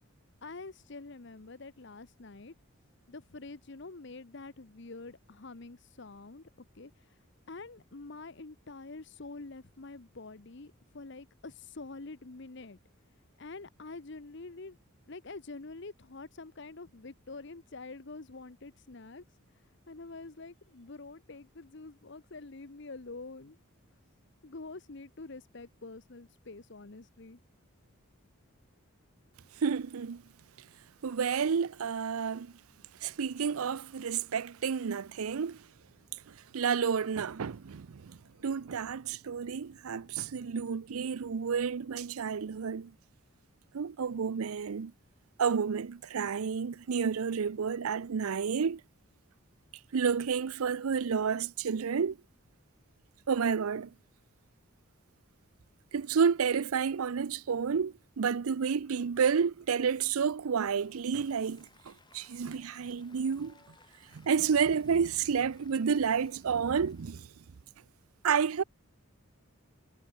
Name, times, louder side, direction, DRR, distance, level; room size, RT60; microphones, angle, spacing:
voice 1, 0.4-2.5 3.1-6.5 6.7-12.8 13.4-14.8 15.1-19.2 19.9-23.6 24.4-27.4, left 3 dB, 55° left, 1.0 m, -46 dB
voice 2, 29.6-30.2 31.0-32.5 33.0-35.6 36.5-38.2 38.4-42.9 43.7-44.9 45.4-48.8 49.9-52.2 53.3-53.9 55.9-63.5 64.1-67.3 68.2-68.6, right 6 dB, 90° right, 0.5 m, -30 dB
Applause, 60.5-67.3, left 4 dB, 20° left, 6.2 m, -64 dB
head